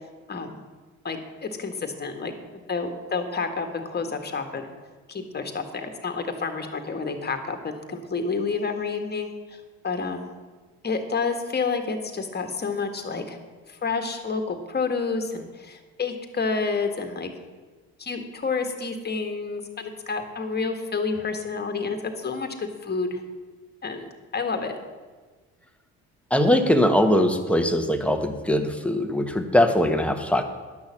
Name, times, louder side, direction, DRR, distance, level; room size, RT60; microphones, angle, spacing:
voice 1, 0.3-0.6 1.0-2.3 2.7-4.7 5.1-10.3 10.8-13.4 13.7-17.3 18.0-22.6 22.8-23.2 23.8-24.8, left 4 dB, 30° left, 6 dB, 1.7 m, -29 dB
voice 2, 26.3-30.4, left 1 dB, 5° left, 6 dB, 1.2 m, -21 dB
10.5 x 6.4 x 7.3 m, 1.4 s
supercardioid pair, 80°, 35 cm